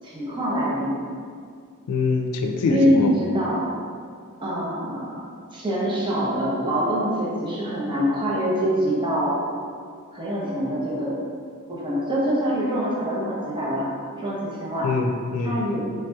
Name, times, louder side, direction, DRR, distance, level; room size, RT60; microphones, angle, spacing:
voice 1, 0.0-0.9 2.7-3.7 4.4-5.2 5.5-9.4 10.1-11.1 11.7-13.9 14.2-14.9 15.4-15.8, equal, 20° right, -6 dB, 0.6 m, -24 dB
voice 2, 1.9-3.1 14.8-15.6, left 4 dB, 85° left, 4 dB, 0.3 m, -24 dB
3.3 x 2.8 x 2.2 m, 2.2 s
head